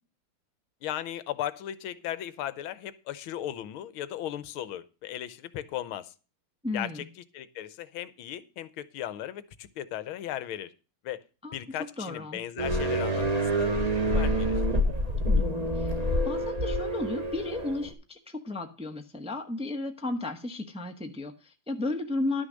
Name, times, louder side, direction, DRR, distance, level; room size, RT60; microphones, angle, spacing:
voice 1, 0.8-6.1 6.7-7.0 7.3-10.7 11.0-11.2 11.5-13.8 14.1-14.6, left 12 dB, 85° left, 16 dB, 1.6 m, -36 dB
voice 2, 6.6-7.1 11.4-11.6 12.0-12.4 15.2-15.9 16.2-22.5, left 2 dB, 5° right, 4 dB, 0.8 m, -34 dB
sound 1, 12.6-17.9, equal, 20° right, 1.2 m, -27 dB
11.5 x 6.4 x 6.4 m, 0.34 s
omnidirectional pair, 2.3 m